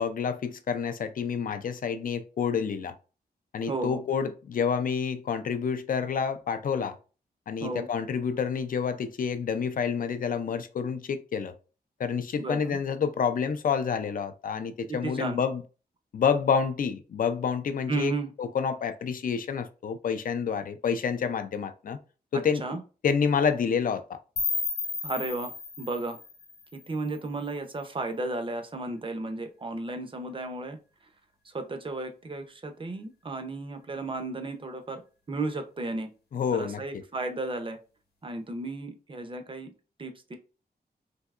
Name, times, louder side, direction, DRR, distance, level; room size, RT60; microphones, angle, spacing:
voice 1, 0.0-2.9 3.5-7.0 7.5-11.5 12.0-15.6 16.1-22.0 22.3-22.8 23.0-24.2 36.3-37.0, left 6 dB, 55° left, 0.4 m, -28 dB
voice 2, 3.7-4.0 7.6-7.9 12.4-12.8 14.9-15.4 17.9-18.3 22.3-22.8 25.0-26.2 26.7-30.8 31.5-35.0 35.3-36.1 36.5-37.8 38.2-39.7 40.0-40.4, right 2 dB, 30° right, 0.5 m, -34 dB
sound 1, 24.4-27.3, left 4 dB, 70° left, 0.8 m, -34 dB
3.4 x 2.7 x 2.3 m
wide cardioid pair, 130°, 17 cm